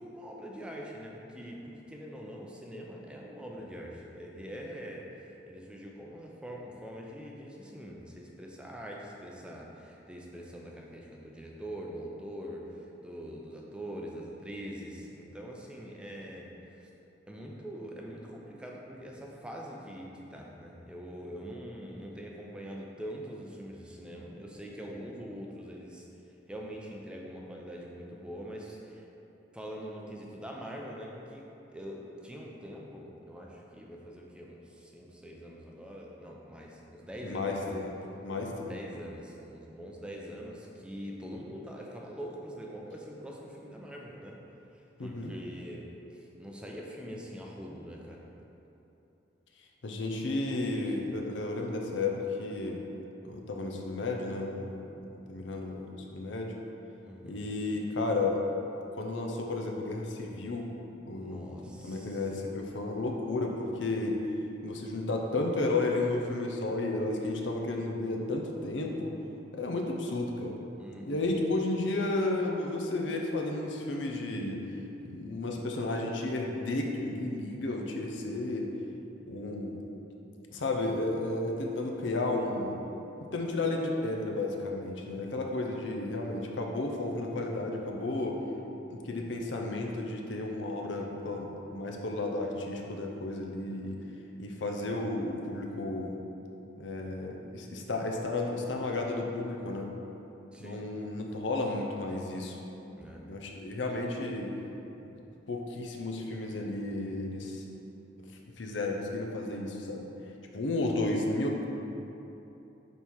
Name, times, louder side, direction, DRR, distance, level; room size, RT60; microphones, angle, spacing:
voice 1, 0.0-16.9 17.3-26.1 26.5-29.0 29.5-31.4 31.7-37.7 38.6-44.4 44.7-48.3 57.1-57.4 61.2-62.2 70.8-71.2 100.5-100.8 103.0-103.2, equal, 5° right, -2 dB, 0.5 m, -43 dB
voice 2, 37.2-37.9 38.2-38.8 45.0-45.3 49.8-52.8 53.2-56.5 57.2-58.4 58.9-60.7 61.1-61.6 61.8-64.2 64.6-69.1 69.5-70.5 71.1-74.6 75.0-78.7 79.3-79.8 80.5-82.8 83.3-88.4 89.0-94.0 94.4-96.2 96.8-99.9 100.6-102.6 103.3-104.5 105.5-107.6 108.6-110.1 110.5-111.7, left 2 dB, 75° left, 1 dB, 0.7 m, -33 dB
5.3 x 4.3 x 4.6 m, 3.0 s
head